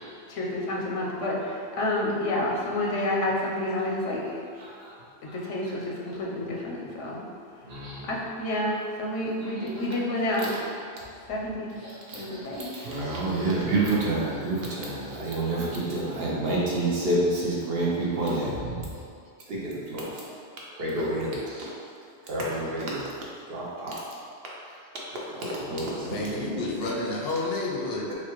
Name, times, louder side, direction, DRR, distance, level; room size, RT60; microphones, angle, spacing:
voice 1, 0.3-4.4 5.2-7.2 8.1-10.5 11.3-11.7 12.1-12.7, left 1 dB, 90° left, -3 dB, 1.0 m, -29 dB
voice 2, 4.6-4.9 5.3-5.4 7.6-8.1 9.4-9.8 11.8-18.7 19.5-20.4 20.8-21.7 22.3-23.1 23.5-24.0 25.2-26.4, right 2 dB, 60° right, -5 dB, 0.8 m, -29 dB
voice 3, 26.0-28.1, left 2 dB, 65° left, -3 dB, 0.7 m, -30 dB
4.2 x 2.2 x 2.9 m, 2.3 s
omnidirectional pair, 1.2 m